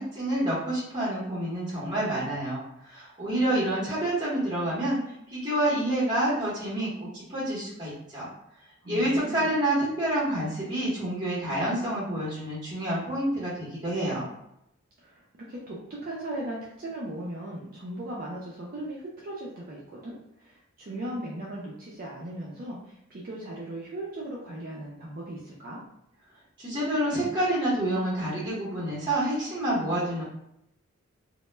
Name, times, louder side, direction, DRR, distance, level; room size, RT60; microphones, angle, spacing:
voice 1, 0.0-5.0 5.3-8.3 8.9-14.3 26.6-30.2, right 1 dB, 20° right, -8 dB, 0.8 m, -28 dB
voice 2, 8.8-9.5 15.0-25.8, right 1 dB, 45° right, -5 dB, 0.4 m, -38 dB
2.1 x 2.1 x 3.1 m, 0.80 s
head